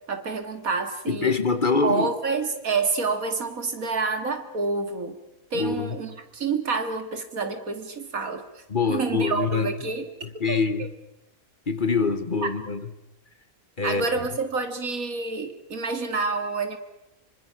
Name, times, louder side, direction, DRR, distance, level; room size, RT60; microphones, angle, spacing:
voice 1, 0.1-1.3 1.8-5.2 5.5-8.4 8.9-10.1 10.5-10.6 12.4-12.5 13.8-16.8, right 4 dB, 80° right, 2.6 m, -28 dB
voice 2, 1.1-2.1 5.5-6.0 8.7-9.7 10.2-10.9 11.7-12.9 13.8-14.2, left 4 dB, 40° left, 1.2 m, -25 dB
26.0 x 24.5 x 5.9 m
omnidirectional pair, 1.5 m